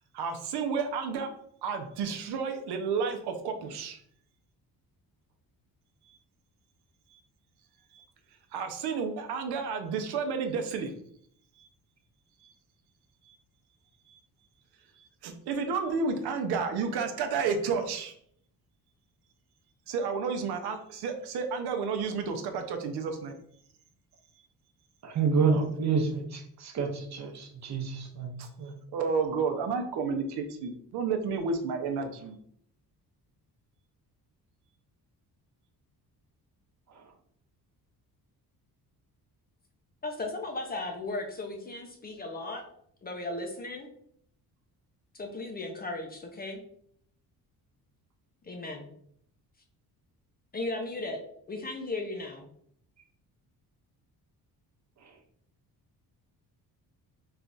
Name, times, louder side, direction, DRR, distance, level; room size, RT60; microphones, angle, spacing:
voice 1, 0.1-1.3 1.6-4.0 6.1-6.2 7.1-7.2 7.9-8.0 8.5-10.9 11.6-11.7 12.4-12.5 13.2-13.4 14.1-14.2 15.0-18.1 19.9-23.3 28.4-28.5 28.9-32.4, right 5 dB, 85° right, 5 dB, 0.7 m, -31 dB
voice 2, 25.0-28.3 28.6-28.7, right 5 dB, 45° right, 3 dB, 0.8 m, -28 dB
voice 3, 40.0-42.6 43.0-43.9 45.1-46.6 48.4-48.9 50.5-51.2 51.5-52.5, left 2 dB, 25° left, 3 dB, 0.5 m, -36 dB
3.3 x 2.3 x 3.9 m, 0.66 s
cardioid pair, 140°, 38 cm